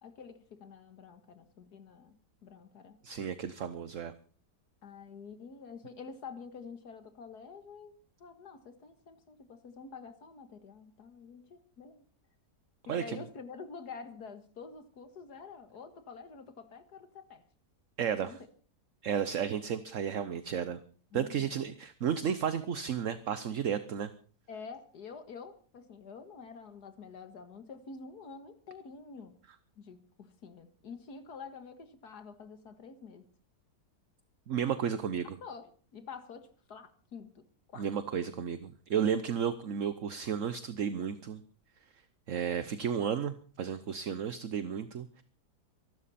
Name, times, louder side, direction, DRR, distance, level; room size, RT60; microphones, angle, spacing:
voice 1, 0.0-3.0 4.8-12.0 12.9-17.5 18.1-18.5 21.1-21.6 24.5-29.4 29.8-33.3 35.4-37.9, left 5 dB, 65° left, 2.2 m, -48 dB
voice 2, 3.0-4.1 12.9-13.2 18.0-18.3 19.0-20.8 21.1-24.1 34.5-35.3 37.8-41.4 42.3-45.2, right 8 dB, 55° right, 1.1 m, -33 dB
24.0 x 13.0 x 4.3 m
omnidirectional pair, 1.8 m